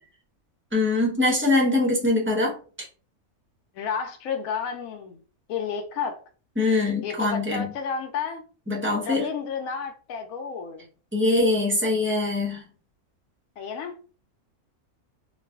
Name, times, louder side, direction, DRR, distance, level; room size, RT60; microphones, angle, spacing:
voice 1, 0.7-2.9 6.6-7.7 8.7-9.2 11.1-12.6, left 2 dB, 15° right, 0.4 m, -23 dB
voice 2, 3.7-5.2 5.5-6.2 7.0-8.4 9.0-10.9 13.6-13.9, left 6 dB, 70° left, 1.0 m, -31 dB
2.5 x 2.4 x 3.4 m
omnidirectional pair, 1.6 m